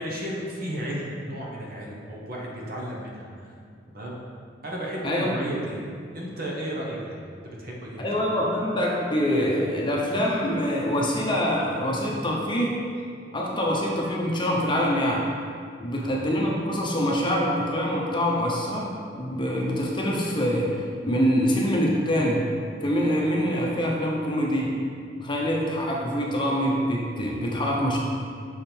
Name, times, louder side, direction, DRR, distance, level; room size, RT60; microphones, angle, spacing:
voice 1, 0.0-3.5 3.9-4.1 4.6-5.8 6.1-8.1 15.9-16.2, equal, 50° right, -3 dB, 1.0 m, -33 dB
voice 2, 8.0-12.8 13.3-15.3 15.8-22.4 22.8-24.8 25.2-28.0, equal, 25° left, -3 dB, 0.7 m, -25 dB
6.3 x 3.6 x 4.4 m, 2.2 s
head